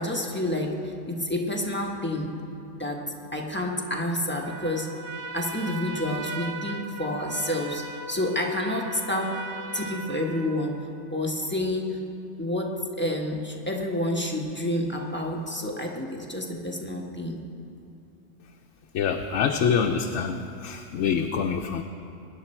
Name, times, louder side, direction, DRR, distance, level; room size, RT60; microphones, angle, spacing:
voice 1, 0.0-2.3 2.8-3.0 3.3-4.9 5.3-9.4 9.7-10.8 11.1-12.0 12.4-17.4, left 1 dB, 10° left, -1 dB, 1.2 m, -29 dB
Trumpet, 4.4-10.9, right 3 dB, 60° right, 1.0 m, -38 dB
voice 2, 18.9-21.8, left 6 dB, 70° left, 5 dB, 0.9 m, -25 dB
21.0 x 10.5 x 4.4 m, 2.7 s
omnidirectional pair, 1.3 m